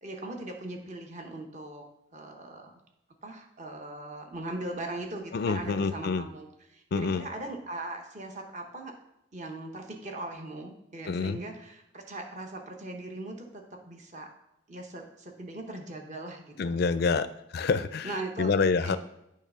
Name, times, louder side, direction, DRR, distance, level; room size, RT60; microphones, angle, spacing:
voice 1, 0.0-1.8 2.1-2.7 3.2-9.0 9.3-14.3 14.7-16.8 18.0-18.5 18.8-19.0, right 2 dB, 35° right, 2 dB, 0.9 m, -40 dB
voice 2, 5.3-6.2 6.9-7.3 11.1-11.4 16.6-17.3 17.5-19.0, left 4 dB, 50° left, 13 dB, 0.4 m, -27 dB
8.5 x 3.2 x 5.5 m, 0.84 s
head